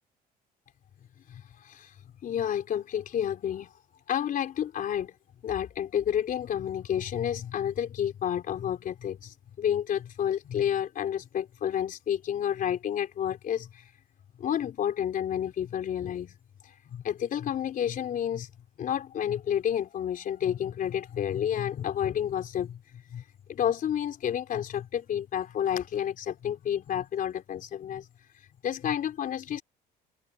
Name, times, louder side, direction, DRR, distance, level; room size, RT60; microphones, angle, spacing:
voice 1, 1.3-1.9 2.2-3.7 4.1-5.2 5.4-13.9 14.4-16.3 16.9-18.5 18.8-23.2 23.5-28.1 28.6-29.6, left 9 dB, 55° left, 3.9 m, -30 dB
open air
cardioid pair, 110°, 17 cm